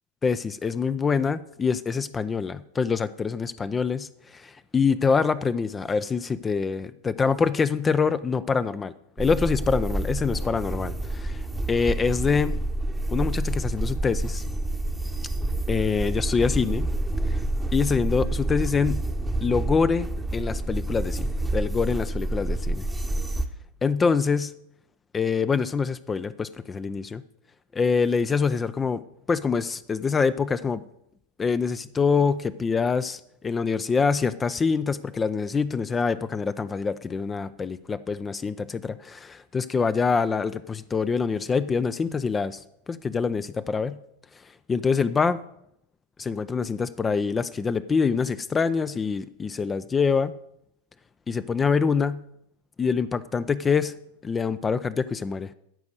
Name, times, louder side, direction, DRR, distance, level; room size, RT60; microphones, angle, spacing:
voice 1, 0.2-12.6 13.1-14.4 15.7-16.9 17.3-17.4 17.7-19.0 19.4-22.8 23.8-24.5 25.1-27.2 27.7-29.0 29.3-30.8 31.4-44.0 44.7-45.4 46.2-50.3 51.3-52.2 52.8-54.0 54.2-55.5, left 5 dB, 15° left, 14 dB, 0.4 m, -25 dB
sound 1, 9.2-23.5, right 2 dB, 5° right, 0.9 m, -28 dB
14.0 x 5.2 x 7.9 m, 0.75 s
figure-of-eight pair, 90°, 0 cm